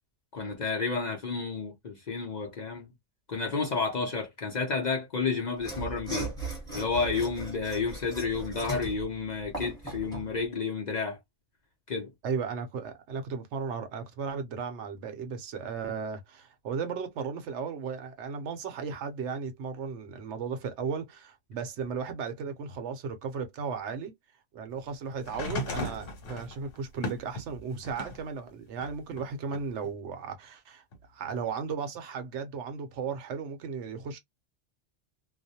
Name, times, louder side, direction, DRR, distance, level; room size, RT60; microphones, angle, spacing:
voice 1, 0.3-2.9 3.3-6.3 6.7-11.2 11.9-12.1, left 4 dB, 50° left, 0.6 m, -31 dB
Mechanisms / Sawing, 5.6-10.3, right 2 dB, 5° left, 1.1 m, -38 dB
voice 2, 12.2-24.1 24.5-30.8 31.1-34.2, right 6 dB, 70° right, 0.9 m, -35 dB
sound 1, 25.2-28.3 28.8-29.9 30.9-31.0, left 2 dB, 85° left, 1.1 m, -37 dB
2.4 x 2.0 x 2.6 m
omnidirectional pair, 1.3 m